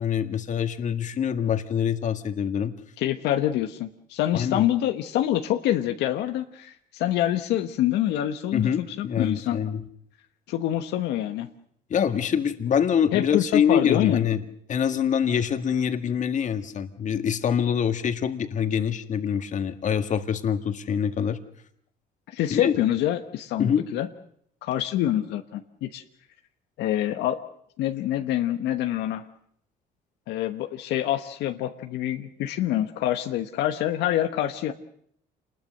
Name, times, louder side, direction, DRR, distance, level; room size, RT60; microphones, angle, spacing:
voice 1, 0.0-2.7 4.3-4.6 8.5-9.8 11.9-14.4 14.7-21.4 22.5-22.8 23.6-23.9, left 8 dB, 45° left, 8 dB, 1.9 m, -25 dB
voice 2, 3.0-9.6 10.5-11.5 13.1-14.2 22.3-24.1 24.6-26.0 26.8-27.4 27.8-29.2 30.3-34.7, left 12 dB, 85° left, 7 dB, 1.2 m, -26 dB
27.5 x 20.5 x 6.6 m, 0.66 s
cardioid pair, 110°, 17 cm